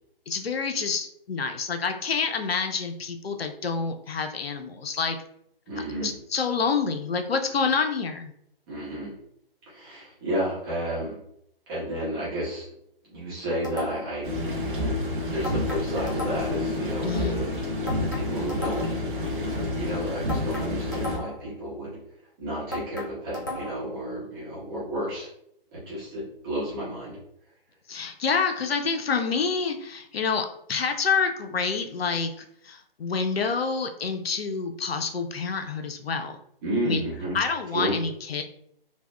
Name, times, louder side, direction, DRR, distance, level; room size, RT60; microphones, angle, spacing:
voice 1, 0.3-5.2 6.0-8.3 17.0-17.4 27.9-32.3 32.6-36.4 36.9-37.0 37.3-38.4, left 5 dB, 80° left, 6 dB, 0.5 m, -27 dB
voice 2, 5.7-6.1 8.7-9.1 9.7-11.2 11.7-12.7 13.1-14.3 15.3-17.5 17.9-18.9 19.7-22.0 22.4-25.3 25.7-27.2 36.6-37.4 37.7-37.9, right 1 dB, 25° right, -8 dB, 0.9 m, -31 dB
sound 1, 13.6-14.2 15.4-16.7 17.9-19.1 20.3-21.5 22.7-23.9, left 1 dB, 20° left, 0.3 m, -35 dB
sound 2, 14.2-21.2, left 1 dB, 55° right, 0.8 m, -29 dB
3.3 x 2.2 x 2.2 m, 0.72 s
figure-of-eight pair, 135°, 30 cm